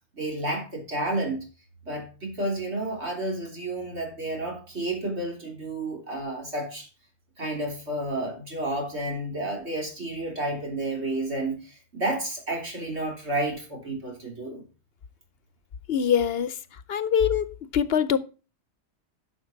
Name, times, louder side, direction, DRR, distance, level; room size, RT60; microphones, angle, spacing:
voice 1, 0.1-1.4 1.9-6.9 7.4-14.6, right 1 dB, 75° right, 4.0 m, -31 dB
voice 2, 15.9-16.6 16.9-17.5 17.7-18.2, left 8 dB, 65° left, 0.9 m, -23 dB
11.0 x 6.3 x 4.5 m
omnidirectional pair, 1.1 m